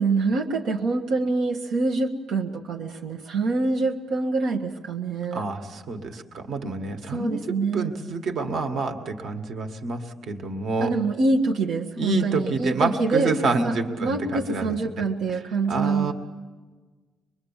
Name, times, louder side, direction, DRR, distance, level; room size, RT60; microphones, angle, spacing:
voice 1, 0.0-5.4 7.1-8.0 10.8-13.3 13.6-13.7 14.0-16.1, right 3 dB, 85° right, 0 dB, 1.3 m, -25 dB
voice 2, 5.3-7.4 7.7-10.9 12.0-14.7 15.7-16.1, right 3 dB, 60° right, 6 dB, 1.7 m, -28 dB
24.0 x 22.0 x 7.3 m, 1.3 s
cardioid pair, 145°, 0 cm